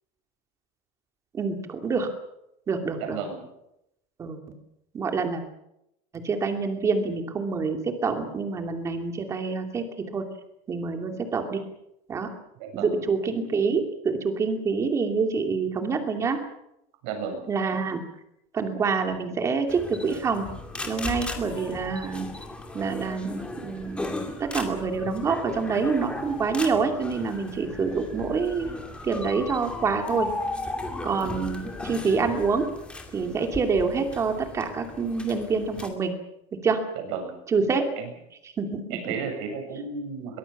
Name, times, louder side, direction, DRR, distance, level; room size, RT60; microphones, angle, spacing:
voice 1, 1.3-2.1 2.7-3.2 4.2-4.4 4.9-5.4 6.1-10.3 10.7-11.6 12.1-12.3 12.7-16.4 17.5-18.0 18.5-20.5 20.9-22.3 22.7-28.8 29.0-30.3 31.0-32.7 33.1-36.1 36.5-36.8 37.5-37.9 38.6-39.1, right 4 dB, 20° right, 5 dB, 2.6 m, -27 dB
voice 2, 2.9-3.4 12.6-13.0 17.0-17.4 37.0-37.4 38.0-38.1 38.9-40.4, right 5 dB, 60° right, 4 dB, 7.6 m, -33 dB
sound 1, 19.7-35.9, left 2 dB, 5° left, 2.4 m, -36 dB
23.0 x 21.0 x 7.2 m, 0.83 s
cardioid pair, 180°, 16 cm